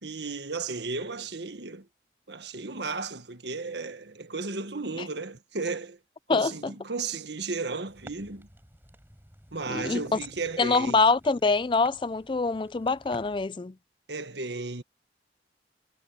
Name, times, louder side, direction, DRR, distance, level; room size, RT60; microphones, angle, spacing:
voice 1, 0.0-1.9 2.3-6.0 6.3-8.5 9.5-11.0 14.1-14.8, right 3 dB, 75° right, 1.6 m, -34 dB
sound 1, 7.9-13.5, right 1 dB, 10° right, 4.7 m, -52 dB
voice 2, 9.7-10.0 10.6-13.7, left 4 dB, 25° left, 0.4 m, -24 dB
head